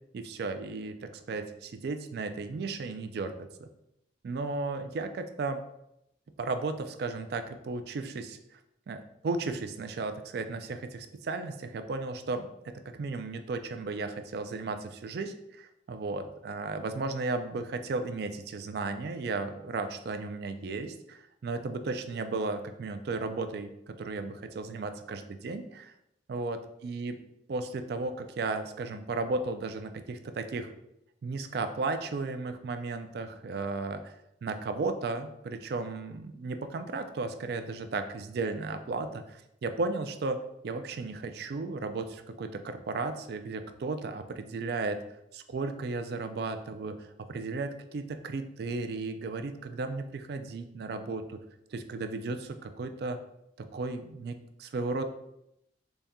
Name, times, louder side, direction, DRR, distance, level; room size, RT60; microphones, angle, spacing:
voice 1, 0.1-3.7 4.2-5.6 6.4-8.6 8.9-25.9 26.3-27.2 27.5-30.7 31.2-34.1 34.4-40.4 40.6-45.0 45.3-51.4 51.7-53.2 53.6-55.0, right 3 dB, 55° right, 9 dB, 0.3 m, -35 dB
4.0 x 2.2 x 3.5 m, 0.80 s
head